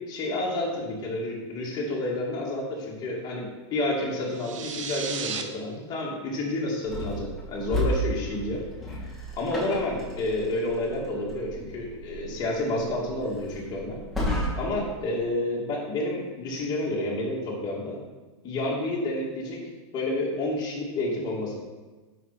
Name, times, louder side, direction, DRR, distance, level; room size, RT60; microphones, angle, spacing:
voice 1, 0.1-3.5 3.7-8.6 9.4-14.0 14.5-18.0 18.4-19.6 19.9-21.6, left 1 dB, 25° left, -4 dB, 2.4 m, -29 dB
sound 1, 4.3-5.4, right 6 dB, 80° right, 1.0 m, -34 dB
sound 2, 6.9-14.9, equal, ahead, 2.6 m, -33 dB
9.0 x 6.0 x 4.3 m, 1.2 s
supercardioid pair, 140°, 16 cm